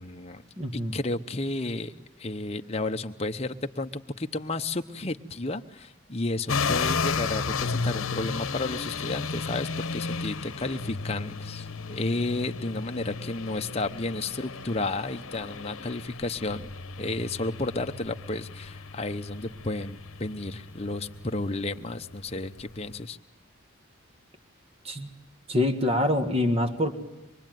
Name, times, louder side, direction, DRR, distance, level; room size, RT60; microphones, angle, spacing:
voice 1, 0.0-0.4 0.7-1.9 2.2-16.7 17.0-23.2, left 2 dB, 30° left, 6 dB, 0.9 m, -32 dB
voice 2, 0.6-0.9 24.8-25.1 25.5-26.9, left 1 dB, 30° right, 7 dB, 1.7 m, -25 dB
sound 1, 6.5-23.0, left 4 dB, 80° left, 1.0 m, -34 dB
25.0 x 23.0 x 9.2 m, 1.0 s
head